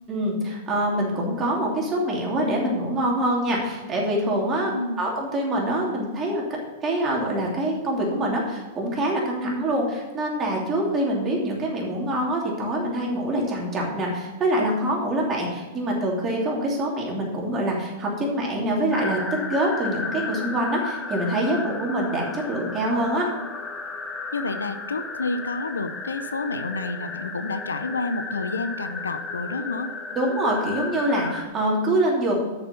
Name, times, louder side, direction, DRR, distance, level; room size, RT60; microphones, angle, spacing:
voice 1, 0.1-19.2 19.5-23.3 30.1-32.3, right 1 dB, 25° right, -2 dB, 2.9 m, -25 dB
voice 2, 4.7-5.1 24.3-29.9, left 3 dB, 85° left, 10 dB, 0.6 m, -29 dB
sound 1, 18.9-31.4, left 4 dB, 15° left, 1.0 m, -34 dB
6.9 x 6.8 x 6.8 m, 1.2 s
hypercardioid pair, 100°, 0 cm